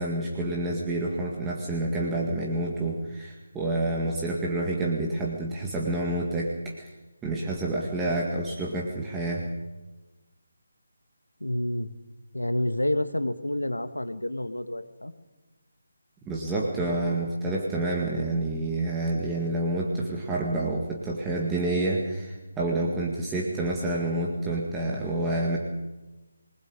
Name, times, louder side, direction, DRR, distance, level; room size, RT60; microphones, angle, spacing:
voice 1, 0.0-6.9 7.2-9.5 16.3-25.6, right 2 dB, 10° right, -3 dB, 1.9 m, -28 dB
voice 2, 11.4-12.0 12.3-15.1, left 1 dB, 80° left, 10 dB, 1.7 m, -29 dB
27.5 x 20.0 x 5.1 m, 1.1 s
figure-of-eight pair, 150°, 0 cm